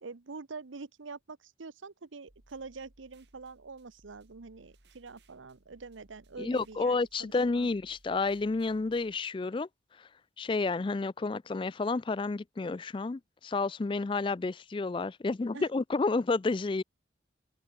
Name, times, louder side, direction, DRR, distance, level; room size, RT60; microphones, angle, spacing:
voice 1, 0.0-7.7 15.5-15.7, right 4 dB, 90° right, 0.9 m, -45 dB
sound 1, 2.3-9.1, right 1 dB, 60° right, 3.5 m, -63 dB
voice 2, 6.4-9.7 10.4-16.8, left 3 dB, 25° left, 0.3 m, -30 dB
open air
head